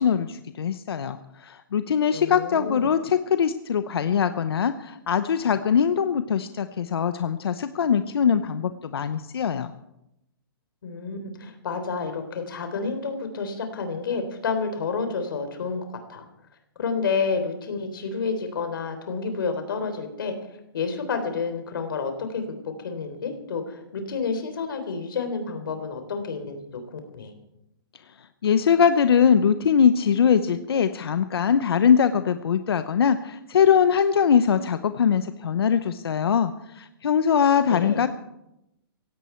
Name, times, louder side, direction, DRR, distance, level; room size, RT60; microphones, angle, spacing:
voice 1, 0.0-9.7 28.4-38.1, left 7 dB, 80° left, 11 dB, 0.9 m, -22 dB
voice 2, 2.1-2.9 10.8-15.8 16.1-16.3 16.8-20.4 20.7-23.8 24.1-27.3 37.7-38.0, left 5 dB, 60° left, 7 dB, 3.6 m, -29 dB
17.0 x 17.0 x 4.5 m, 0.86 s
hypercardioid pair, 170°, 13 cm